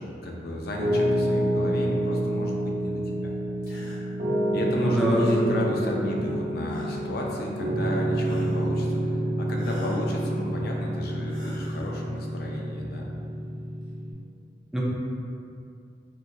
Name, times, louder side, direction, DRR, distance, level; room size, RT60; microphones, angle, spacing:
voice 1, 0.0-3.3 4.5-13.1, left 1 dB, 60° left, -1 dB, 0.5 m, -33 dB
Piano, 0.8-14.1, right 1 dB, 50° right, 0.8 m, -28 dB
sound 1, 3.6-4.0 5.1-5.5 6.6-7.1 8.2-8.7 9.5-10.1 11.3-11.9, left 1 dB, 75° left, 1.1 m, -45 dB
voice 2, 4.8-5.5 5.8-6.0 14.7-14.8, right 1 dB, 5° right, -5 dB, 0.4 m, -23 dB
3.7 x 2.2 x 2.8 m, 2.5 s
head